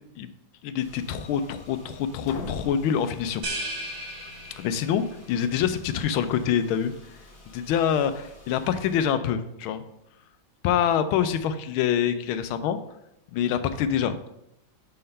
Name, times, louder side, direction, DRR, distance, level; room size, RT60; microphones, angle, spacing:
voice 1, 0.6-3.4 4.6-6.9 7.5-9.8 10.6-12.8 13.3-14.3, left 8 dB, 90° left, 11 dB, 1.4 m, -25 dB
Car / Engine, 0.8-9.1, left 1 dB, 35° left, 1.1 m, -50 dB
sound 1, 2.2-4.1, left 4 dB, 65° left, 1.1 m, -40 dB
sound 2, 3.4-5.1, right 1 dB, 50° right, 1.9 m, -35 dB
5.8 x 4.3 x 5.4 m, 0.82 s
omnidirectional pair, 2.2 m